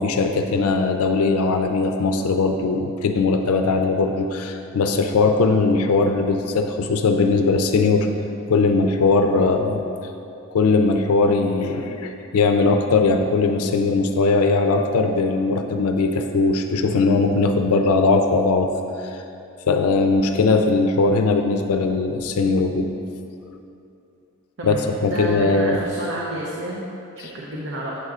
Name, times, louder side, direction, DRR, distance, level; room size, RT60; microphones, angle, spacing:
voice 1, 0.0-8.1 8.5-9.8 10.5-18.7 19.0-19.2 19.7-22.9 24.6-25.8 27.2-27.3, left 3 dB, 85° left, 5 dB, 0.4 m, -20 dB
voice 2, 24.6-28.0, right 1 dB, 55° right, -4 dB, 0.7 m, -30 dB
8.6 x 7.7 x 2.4 m, 2.7 s
head